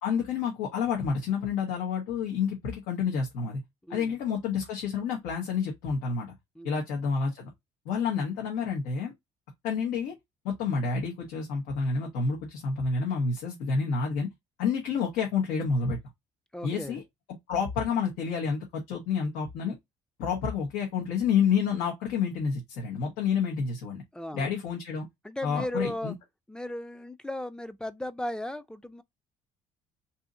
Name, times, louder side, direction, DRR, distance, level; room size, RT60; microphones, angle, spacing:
voice 1, 0.0-3.6 3.9-6.3 6.6-7.5 7.8-9.1 9.6-10.1 10.4-14.3 14.6-16.0 16.6-17.0 17.5-19.7 20.2-24.0 24.3-25.1 25.4-26.1, left 6 dB, 85° left, 1.0 m, -29 dB
voice 2, 3.8-4.1 6.6-6.8 16.5-17.0 24.1-24.5 25.2-26.1 26.5-29.0, left 1 dB, 5° left, 0.4 m, -36 dB
2.7 x 2.7 x 3.6 m
supercardioid pair, 80°, 14 cm